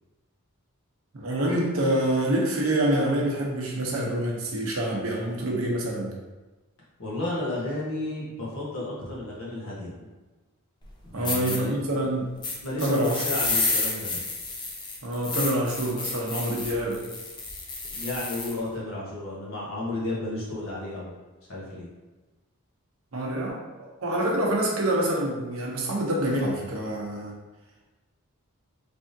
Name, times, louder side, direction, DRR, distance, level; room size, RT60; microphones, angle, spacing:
voice 1, 1.1-6.1 11.1-12.3 12.8-13.2 15.0-17.0 23.1-27.4, right 1 dB, 65° right, -2 dB, 0.8 m, -26 dB
voice 2, 7.0-9.9 11.1-11.7 12.6-14.2 17.9-21.1 21.5-21.9, left 2 dB, 65° left, -6 dB, 1.2 m, -32 dB
sound 1, 10.8-10.9 11.2-11.6 12.4-18.6, left 3 dB, 20° left, 0.5 m, -30 dB
3.5 x 3.4 x 2.7 m, 1.2 s
head